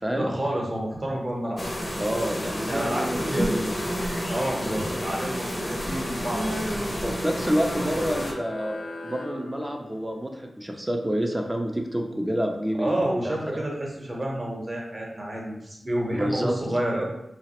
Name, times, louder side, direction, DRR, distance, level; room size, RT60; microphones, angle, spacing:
voice 1, 0.1-1.6 2.7-3.6 4.3-6.5 12.8-17.0, right 1 dB, 40° right, -2 dB, 0.9 m, -29 dB
sound 1, 1.6-8.3, equal, 35° left, 0.6 m, -30 dB
voice 2, 2.0-3.7 4.5-4.8 7.0-8.8 9.0-13.7 16.1-16.5, equal, 15° right, 2 dB, 0.5 m, -28 dB
sound 2, 7.3-10.2, left 2 dB, 85° left, 0.5 m, -40 dB
3.1 x 2.0 x 2.9 m, 0.82 s
cardioid pair, 45°, 0 cm